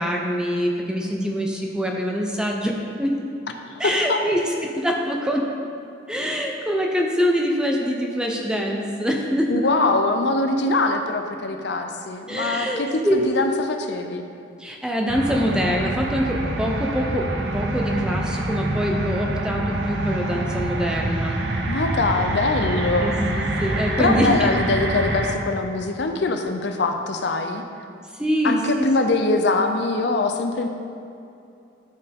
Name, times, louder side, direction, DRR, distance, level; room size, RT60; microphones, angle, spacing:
voice 1, 0.0-3.1 3.8-5.5 6.1-9.7 12.3-13.3 14.6-21.4 23.0-24.5 28.2-29.2, equal, 5° right, 0 dB, 0.7 m, -24 dB
voice 2, 3.7-4.2 9.5-14.2 21.7-23.2 24.0-27.6 28.4-30.7, left 3 dB, 60° left, 5 dB, 0.5 m, -23 dB
sound 1, 15.1-25.4, right 1 dB, 65° right, 0.7 m, -26 dB
13.0 x 4.6 x 3.6 m, 2.6 s
head